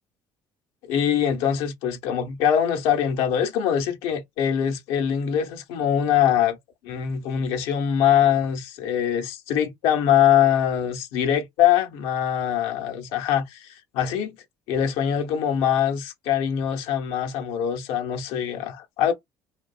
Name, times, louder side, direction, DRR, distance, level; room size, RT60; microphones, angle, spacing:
voice 1, 0.8-6.6 6.8-14.3 14.7-19.1, left 9 dB, 75° left, 0.7 m, -23 dB
2.5 x 2.2 x 2.3 m
hypercardioid pair, 70°, 9 cm